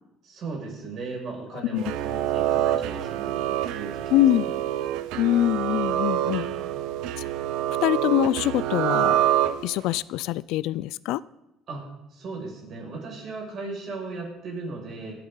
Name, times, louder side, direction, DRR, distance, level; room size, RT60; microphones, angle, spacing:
voice 1, 0.2-4.1 6.1-6.9 11.7-11.9 12.1-15.1, right 3 dB, 50° right, -2 dB, 6.3 m, -37 dB
sound 1, 1.8-10.0, right 12 dB, 85° right, 0.7 m, -26 dB
voice 2, 4.1-4.4 5.2-6.5 7.8-9.2 9.6-11.2, left 14 dB, 80° left, 19 dB, 0.4 m, -23 dB
27.0 x 9.1 x 3.9 m, 0.93 s
cardioid pair, 135°, 0 cm